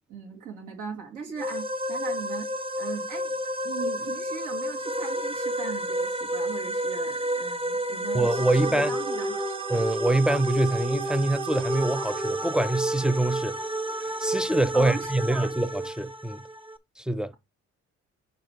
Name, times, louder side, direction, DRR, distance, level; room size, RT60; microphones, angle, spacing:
voice 1, 0.1-2.5 2.8-3.4 3.6-9.5 14.7-15.5, right 6 dB, 80° right, 2.6 m, -39 dB
sound 1, 1.4-16.8, right 1 dB, 20° right, 0.7 m, -30 dB
voice 2, 8.1-9.0 9.7-13.6 14.2-16.4 17.0-17.3, right 1 dB, 5° right, 0.3 m, -25 dB
5.5 x 4.7 x 4.6 m
cardioid pair, 90°, 30 cm